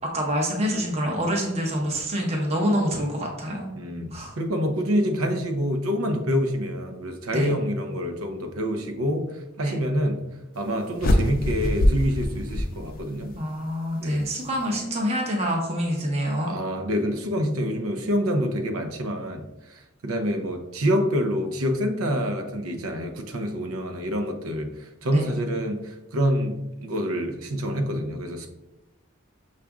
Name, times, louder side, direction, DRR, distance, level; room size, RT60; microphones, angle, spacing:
voice 1, 0.0-3.7 4.1-4.3 7.3-7.5 9.6-9.8 13.3-16.5 25.1-25.3, equal, 30° right, 0 dB, 0.7 m, -26 dB
voice 2, 3.8-10.2 10.5-13.3 14.0-14.3 16.5-26.5 26.8-28.5, equal, 75° right, 5 dB, 0.6 m, -27 dB
sound 1, 11.0-13.4, left 1 dB, 45° left, 0.5 m, -23 dB
5.9 x 2.5 x 3.5 m, 0.96 s
head